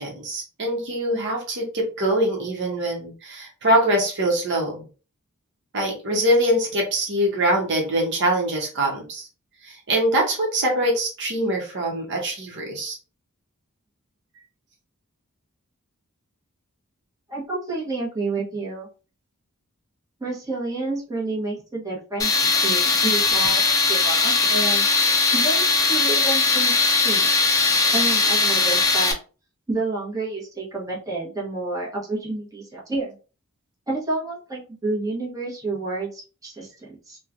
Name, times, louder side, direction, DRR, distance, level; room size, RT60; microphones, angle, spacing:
voice 1, 0.0-4.8 5.7-9.3 9.6-13.0, right 1 dB, 55° right, 0 dB, 0.9 m, -23 dB
voice 2, 17.3-18.9 20.2-24.8 25.3-26.7 27.0-27.3 27.9-29.1 29.7-33.1 33.9-37.2, right 2 dB, 15° right, -5 dB, 0.9 m, -29 dB
Tools, 22.2-29.1, left 3 dB, 15° left, 0.5 m, -20 dB
3.0 x 2.2 x 2.5 m, 0.35 s
head